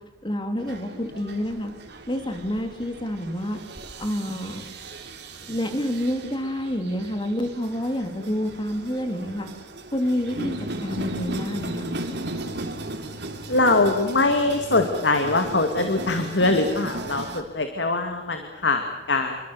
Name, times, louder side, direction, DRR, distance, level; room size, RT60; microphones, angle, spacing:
voice 1, 0.2-1.7 2.1-3.6 4.0-4.6 5.5-9.5 9.9-10.5 10.8-11.9, equal, 25° left, 6 dB, 3.4 m, -28 dB
sound 1, 0.6-17.4, right 1 dB, 70° right, 3.6 m, -36 dB
voice 2, 13.5-19.4, left 2 dB, 70° left, 5 dB, 2.4 m, -22 dB
28.5 x 24.0 x 7.1 m, 1.1 s
head